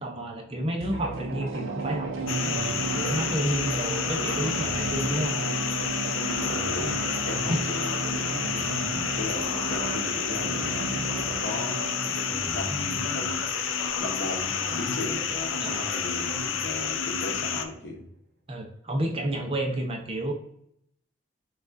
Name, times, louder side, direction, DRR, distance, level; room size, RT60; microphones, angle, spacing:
voice 1, 0.0-5.4 7.5-7.6 15.6-15.9 18.5-20.3, right 1 dB, 30° right, 2 dB, 0.5 m, -30 dB
sound 1, 0.8-13.9 14.2-14.3, right 4 dB, 85° right, 0.4 m, -34 dB
sound 2, 0.9-17.8, right 1 dB, 50° right, 1.1 m, -40 dB
sound 3, 2.3-17.6, left 7 dB, 80° left, 0.4 m, -30 dB
voice 2, 6.4-7.0 7.3-8.3 9.1-12.1 12.5-13.4 14.0-14.5 14.8-18.0, left 1 dB, 60° left, 2 dB, 0.8 m, -36 dB
5.8 x 2.4 x 2.5 m, 0.71 s
head